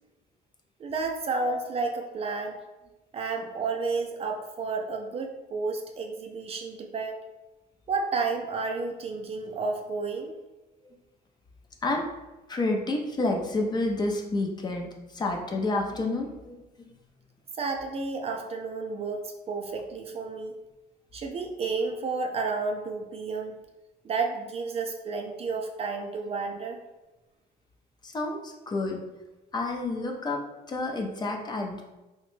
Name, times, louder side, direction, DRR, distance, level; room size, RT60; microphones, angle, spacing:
voice 1, 0.8-2.6 3.1-7.2 7.9-10.3 17.6-20.5 21.1-23.6 24.0-26.8, right 4 dB, 35° right, 3 dB, 0.3 m, -31 dB
voice 2, 12.5-16.6 28.0-29.0 29.5-30.4 30.7-31.8, left 2 dB, 25° left, 1 dB, 0.4 m, -29 dB
2.9 x 2.1 x 3.1 m, 1.1 s
cardioid pair, 110°, 17 cm